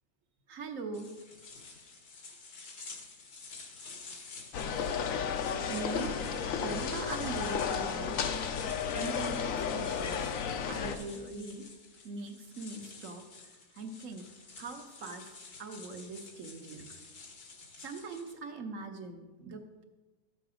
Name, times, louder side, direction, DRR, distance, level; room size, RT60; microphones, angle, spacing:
voice 1, 0.5-1.1 4.7-4.9 5.7-6.2 6.6-8.2 8.9-10.3 10.7-11.6 12.0-13.2 13.7-14.3 14.6-15.3 15.6-17.0 17.8-19.8, right 3 dB, 60° right, 6 dB, 1.4 m, -41 dB
sound 1, 0.9-18.4, left 4 dB, 80° left, 2.1 m, -50 dB
sound 2, 4.5-11.0, left 7 dB, 65° left, 1.1 m, -33 dB
14.0 x 6.9 x 5.0 m, 1.2 s
omnidirectional pair, 1.6 m